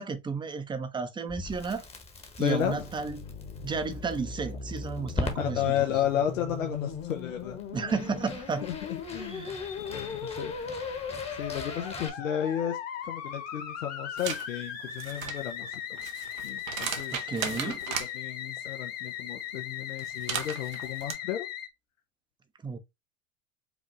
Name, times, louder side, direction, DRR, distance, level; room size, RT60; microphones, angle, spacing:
voice 1, 0.0-1.9 2.4-3.3 3.6-5.7 7.7-8.7 9.3-9.5 17.1-17.8 22.6-22.8, right 5 dB, 10° right, 0.6 m, -33 dB
Crackle, 1.3-12.1, left 3 dB, 15° left, 1.1 m, -42 dB
voice 2, 2.4-2.9 5.4-7.6 8.6-9.5 9.9-10.5 11.4-12.8 13.0-16.0 16.4-17.7 18.1-21.5, left 10 dB, 75° left, 0.8 m, -33 dB
Musical instrument, 2.6-21.7, left 7 dB, 40° left, 1.3 m, -38 dB
sound 1, 14.2-14.4 14.9-18.1 20.0-21.1, right 7 dB, 80° right, 0.9 m, -36 dB
5.1 x 2.4 x 3.0 m
hypercardioid pair, 95°, 40 cm